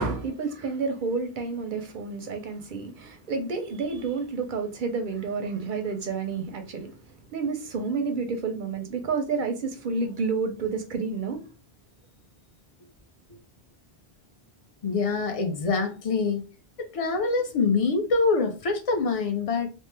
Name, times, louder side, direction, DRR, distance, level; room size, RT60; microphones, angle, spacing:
voice 1, 0.0-6.9 7.3-11.4, right 4 dB, 60° right, 0.6 m, -30 dB
voice 2, 14.8-16.5 16.8-19.7, left 4 dB, 40° left, 0.6 m, -25 dB
3.0 x 2.0 x 3.2 m
omnidirectional pair, 1.1 m